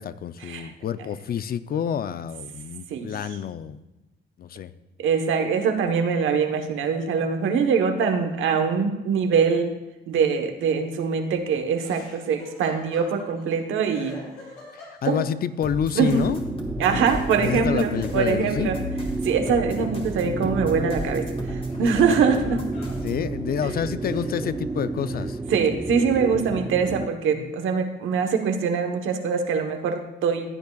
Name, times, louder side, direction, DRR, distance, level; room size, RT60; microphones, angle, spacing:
voice 1, 0.0-3.8 4.4-4.7 15.0-16.4 17.4-18.7 22.5-22.6 23.0-25.4 27.4-27.5, left 8 dB, 50° left, 14 dB, 0.5 m, -28 dB
voice 2, 5.0-9.7 10.1-14.2 15.0-15.2 15.9-16.2 16.8-18.8 19.2-22.6 25.5-30.5, right 6 dB, 80° right, 5 dB, 1.2 m, -23 dB
Laughter, 11.8-13.6 13.9-15.5 17.9-21.0 21.4-23.0 23.6-23.7 24.0-25.4, left 2 dB, 90° left, 3.7 m, -45 dB
sound 1, 15.6-23.2, left 1 dB, 30° left, 1.9 m, -36 dB
sound 2, 16.1-27.1, right 3 dB, 10° right, 0.3 m, -31 dB
15.0 x 9.3 x 2.4 m, 1.0 s
cardioid pair, 90°, 20 cm